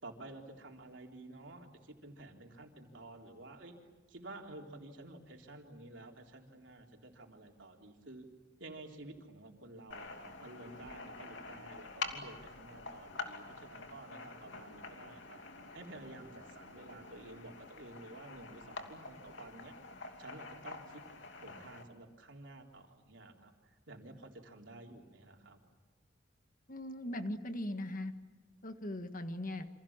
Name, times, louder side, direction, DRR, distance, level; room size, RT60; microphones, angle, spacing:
voice 1, 0.0-3.8 4.1-8.3 8.6-15.4 15.7-19.7 20.2-21.0 21.3-25.6, right 2 dB, 65° right, 2 dB, 3.9 m, -51 dB
sound 1, 9.9-21.8, left 4 dB, 65° left, 2.9 m, -47 dB
voice 2, 26.7-28.1 28.6-29.7, left 1 dB, 45° left, 8 dB, 1.7 m, -39 dB
29.0 x 26.5 x 7.4 m, 1.3 s
head